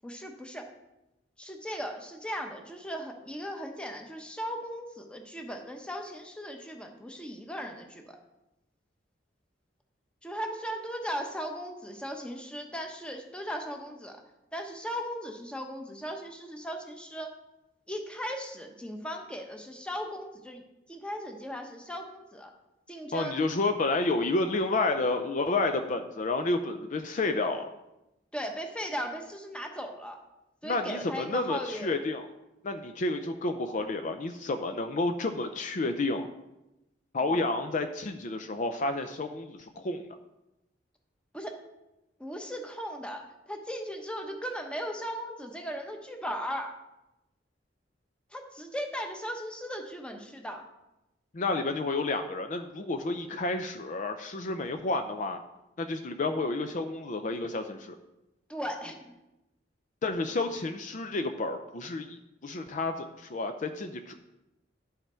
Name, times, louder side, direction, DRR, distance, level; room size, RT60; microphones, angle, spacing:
voice 1, 0.0-0.7 1.4-8.2 10.2-14.2 14.5-17.3 17.9-20.6 20.9-22.5 22.9-23.4 28.3-30.2 30.6-32.0 37.2-37.4 41.3-41.6 42.2-46.8 48.3-50.7 58.5-59.1, equal, 5° left, 3 dB, 1.0 m, -37 dB
voice 2, 23.1-27.7 30.6-32.2 32.6-36.3 37.1-40.1 51.3-55.4 55.8-57.9 60.0-64.1, left 2 dB, 45° left, 7 dB, 0.5 m, -30 dB
11.0 x 5.7 x 4.4 m, 0.95 s
head